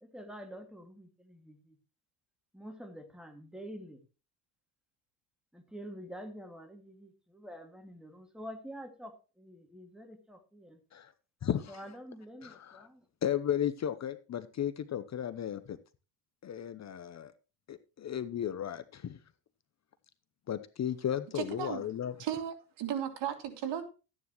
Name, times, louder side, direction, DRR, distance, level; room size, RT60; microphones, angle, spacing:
voice 1, 0.0-1.8 2.5-4.0 5.5-10.8 11.7-13.1, equal, ahead, 4 dB, 2.2 m, -47 dB
voice 2, 11.4-11.7 12.4-12.9 13.2-15.8 16.4-17.3 17.7-19.2 20.5-22.1, left 10 dB, 35° left, 13 dB, 0.9 m, -34 dB
voice 3, 21.3-21.9 22.2-23.8, right 9 dB, 65° right, 5 dB, 2.7 m, -35 dB
13.5 x 9.7 x 3.1 m, 0.31 s
cardioid pair, 120°, 46 cm